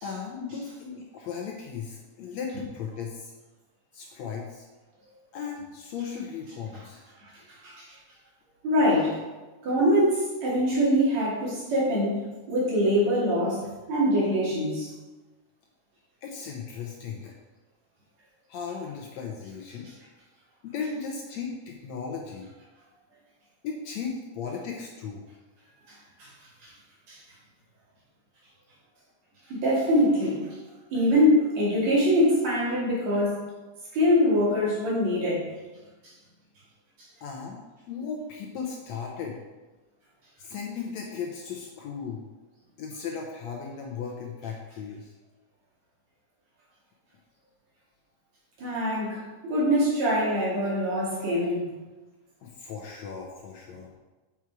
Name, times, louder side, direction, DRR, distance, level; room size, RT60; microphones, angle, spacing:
voice 1, 0.0-3.3 3.9-4.7 5.3-7.0 16.2-17.3 18.5-19.9 20.6-22.5 23.6-25.3 37.2-37.6 37.9-39.4 40.4-42.2 42.8-45.1 52.4-53.9, left 6 dB, 70° left, 1 dB, 1.8 m, -36 dB
voice 2, 8.6-9.2 9.6-14.9 25.9-26.3 26.6-26.7 27.1-27.2 29.5-30.4 30.9-33.4 33.9-35.5 48.6-51.7, equal, 55° right, -6 dB, 3.4 m, -24 dB
7.0 x 6.1 x 4.7 m, 1.2 s
omnidirectional pair, 3.8 m